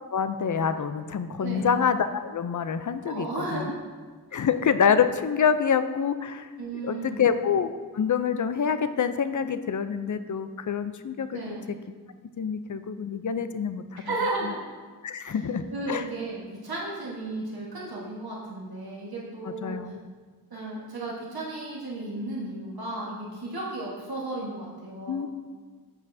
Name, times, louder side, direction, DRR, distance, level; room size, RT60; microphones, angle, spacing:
voice 1, 0.1-3.7 4.3-6.5 6.8-11.4 12.4-14.1 14.4-14.5 15.0-16.0 19.4-20.0 25.1-25.3, left 7 dB, 55° left, 11 dB, 0.5 m, -26 dB
voice 2, 1.4-1.7 3.0-3.7 4.3-4.4 6.6-7.3 11.3-11.7 14.0-14.6 15.2-15.4 15.7-19.8 20.5-25.3, right 2 dB, 75° right, -5 dB, 1.4 m, -34 dB
8.9 x 7.6 x 2.7 m, 1.5 s
wide cardioid pair, 90°, 38 cm